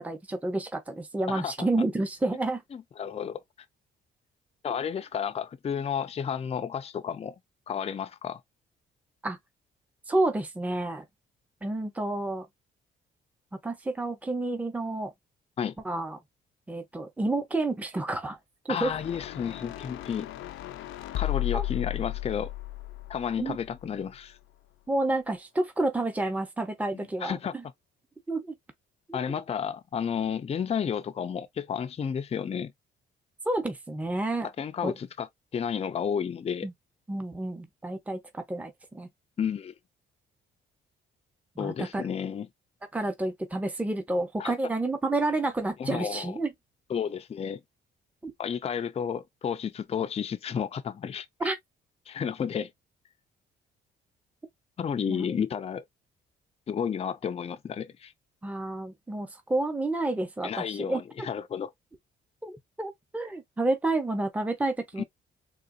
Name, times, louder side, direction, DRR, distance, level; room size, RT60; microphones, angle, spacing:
voice 1, 0.0-2.6 9.2-9.4 10.1-11.1 11.6-12.5 13.6-15.1 15.8-16.2 16.7-18.4 18.7-18.9 21.5-21.6 23.4-23.6 24.9-27.6 28.3-28.5 29.1-29.4 33.5-34.5 34.8-34.9 36.6-36.7 37.1-39.1 41.6-42.1 42.9-46.5 48.2-48.3 51.4-51.6 55.1-55.4 58.4-61.0 62.4-65.0, right 2 dB, 5° right, 0.7 m, -30 dB
voice 2, 1.3-1.7 2.7-3.4 4.6-7.4 7.7-8.4 15.6-15.8 18.7-20.3 21.1-22.5 23.1-24.4 27.2-27.5 29.1-32.7 34.6-36.7 39.4-39.7 41.6-42.5 44.4-44.5 45.8-46.4 46.9-47.6 48.4-51.5 52.1-52.7 54.8-55.8 56.7-58.1 60.4-61.7 65.0-65.1, left 7 dB, 30° left, 0.4 m, -32 dB
sound 1, 18.8-24.1, left 16 dB, 85° left, 0.5 m, -35 dB
3.8 x 2.4 x 2.4 m
cardioid pair, 90°, 20 cm